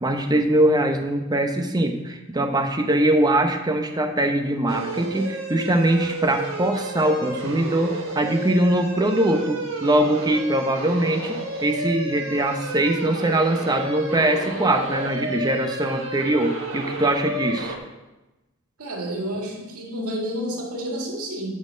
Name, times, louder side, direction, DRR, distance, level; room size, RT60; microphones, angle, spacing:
voice 1, 0.0-17.7, right 1 dB, 20° right, 5 dB, 0.9 m, -22 dB
sound 1, 4.7-17.8, right 2 dB, 65° right, 1.5 m, -32 dB
voice 2, 18.8-21.6, equal, 90° right, -1 dB, 2.1 m, -30 dB
11.5 x 4.4 x 6.3 m, 1.0 s
head